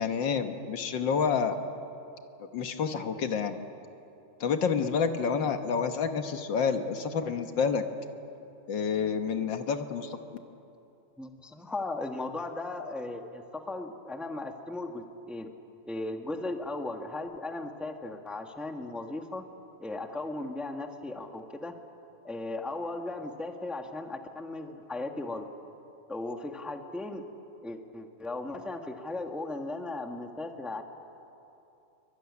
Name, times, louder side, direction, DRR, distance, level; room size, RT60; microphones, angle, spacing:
voice 1, 0.0-1.6 2.4-3.6 4.4-7.8 8.7-10.2, left 6 dB, 70° left, 8 dB, 1.9 m, -29 dB
voice 2, 11.2-15.5 15.9-19.4 19.8-21.7 22.2-25.5 26.1-27.2 27.6-30.8, left 2 dB, ahead, 5 dB, 1.3 m, -37 dB
24.0 x 24.0 x 9.7 m, 2.8 s
omnidirectional pair, 2.1 m